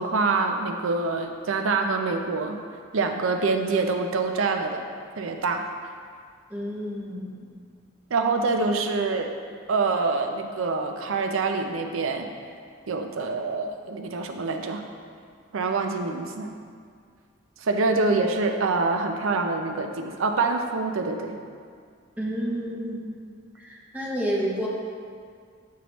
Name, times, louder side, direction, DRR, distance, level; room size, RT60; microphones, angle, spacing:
voice 1, 0.0-2.6 2.9-4.9 5.2-5.7 8.1-9.3 9.7-12.3 12.9-14.8 15.5-16.5 17.6-21.4, right 3 dB, 80° right, 5 dB, 0.5 m, -25 dB
voice 2, 6.5-7.5 22.2-23.1 23.6-24.7, equal, 10° right, -5 dB, 0.8 m, -30 dB
8.0 x 4.6 x 3.0 m, 2.1 s
head